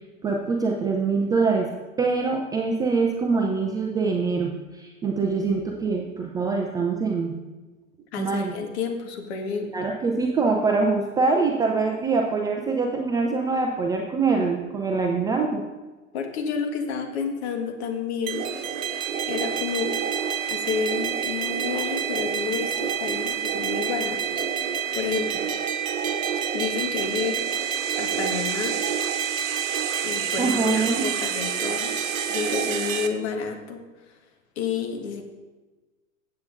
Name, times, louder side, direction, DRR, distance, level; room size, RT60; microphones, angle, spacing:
voice 1, 0.2-1.7 2.0-7.4 8.2-8.5 9.7-15.6 30.4-31.1, right 4 dB, 10° right, 1 dB, 0.4 m, -24 dB
voice 2, 8.1-9.7 16.1-18.5 19.3-19.9 20.5-25.4 26.5-27.4 28.0-28.8 30.0-31.9 32.3-33.8 34.5-35.2, left 6 dB, 50° left, 4 dB, 1.6 m, -30 dB
sound 1, 18.3-33.1, right 8 dB, 70° right, 1.0 m, -27 dB
15.5 x 7.6 x 2.6 m, 1.2 s
figure-of-eight pair, 100°, 40 cm